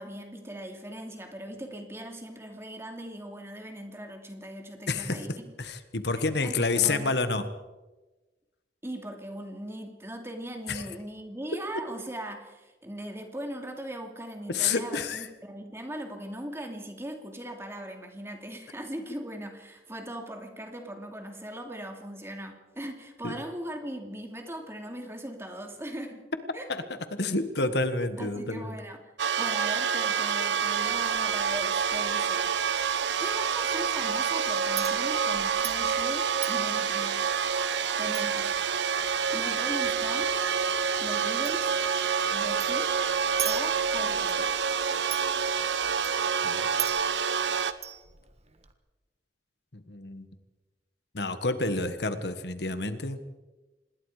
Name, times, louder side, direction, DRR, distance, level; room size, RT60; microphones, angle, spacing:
voice 1, 0.0-5.5 6.4-7.1 8.8-26.2 26.5-26.7 28.2-29.1 29.4-32.5 33.2-37.2 38.0-38.5 39.3-40.4 41.0-41.8 42.3-42.9 43.4-44.5, right 1 dB, 15° right, 4 dB, 2.7 m, -39 dB
voice 2, 4.9-7.5 10.7-10.9 14.5-15.3 23.2-23.3 26.7-26.8 27.1-28.7 46.4-47.1 49.7-50.3 51.1-53.2, left 3 dB, 70° left, 10 dB, 1.5 m, -29 dB
sound 1, 29.2-47.7, right 6 dB, 90° right, 1.1 m, -27 dB
Chink clink, 30.5-48.7, right 10 dB, 35° right, 1.6 m, -43 dB
26.5 x 20.5 x 5.0 m, 1.2 s
head